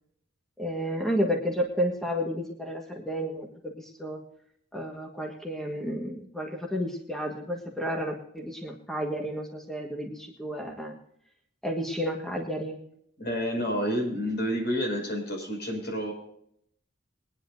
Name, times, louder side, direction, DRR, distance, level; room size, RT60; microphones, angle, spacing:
voice 1, 0.6-4.2 4.7-10.9 11.6-12.8, equal, ahead, 0 dB, 1.5 m, -31 dB
voice 2, 13.2-16.1, equal, 60° left, 1 dB, 5.8 m, -29 dB
22.5 x 10.0 x 2.7 m, 0.70 s
head